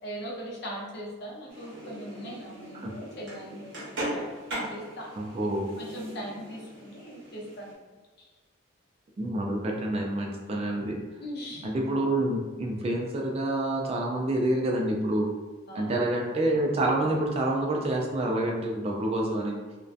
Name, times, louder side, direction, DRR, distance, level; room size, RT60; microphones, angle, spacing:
voice 1, 0.0-3.9 4.5-5.1 5.8-7.7 8.2-8.3 11.2-11.7 15.7-16.0, equal, 55° left, -3 dB, 0.6 m, -40 dB
sound 1, 1.5-7.7, right 1 dB, 65° right, 0.9 m, -39 dB
voice 2, 5.2-5.7 9.2-11.0 11.6-15.3 15.7-19.6, right 1 dB, 30° right, 0 dB, 0.3 m, -27 dB
2.6 x 2.1 x 2.4 m, 1.3 s
head